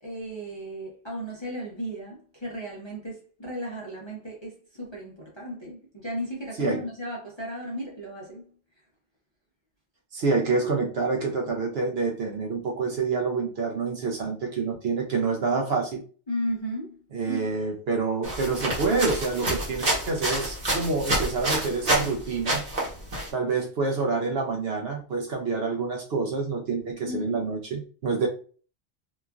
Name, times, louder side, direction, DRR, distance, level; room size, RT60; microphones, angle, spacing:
voice 1, 0.0-4.5 4.8-8.4 16.3-17.0 17.3-17.5 27.1-27.4, equal, 30° left, 0.5 m, -34 dB
voice 2, 10.1-16.0 17.1-22.6 23.3-28.3, right 4 dB, 65° right, 0.8 m, -27 dB
sound 1, 18.2-22.1 22.4-23.3, right 1 dB, 40° right, 1.0 m, -28 dB
3.0 x 2.4 x 2.3 m
omnidirectional pair, 1.2 m